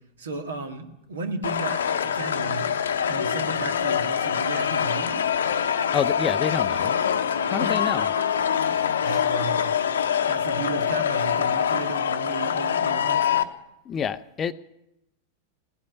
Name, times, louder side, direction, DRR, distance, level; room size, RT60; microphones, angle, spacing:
voice 1, 0.2-2.6 3.0-5.2 7.6-10.0 10.3-13.4, right 4 dB, 65° right, 5 dB, 2.0 m, -35 dB
sound 1, 1.4-13.4, left 8 dB, 65° left, 0.9 m, -24 dB
voice 2, 5.9-6.9 7.5-8.1 9.0-9.3 13.9-14.5, left 8 dB, 25° left, 13 dB, 0.6 m, -28 dB
18.0 x 8.4 x 9.5 m, 0.85 s
figure-of-eight pair, 90°, 0 cm